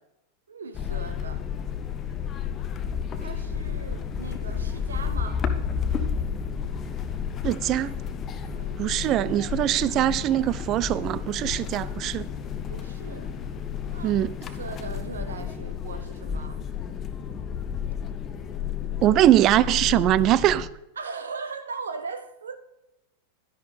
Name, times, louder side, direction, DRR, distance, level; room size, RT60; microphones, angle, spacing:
voice 1, 0.5-1.5 3.2-5.5 8.5-8.8 12.7-13.3 13.9-14.2 14.6-16.6 21.0-22.6, right 4 dB, 70° right, 0.8 m, -38 dB
sound 1, 0.7-20.7, left 7 dB, 30° left, 0.7 m, -31 dB
voice 2, 7.4-7.9 8.8-12.3 14.0-14.3 19.0-20.7, right 13 dB, 35° right, 0.3 m, -22 dB
11.5 x 10.5 x 3.3 m
figure-of-eight pair, 90°, 0 cm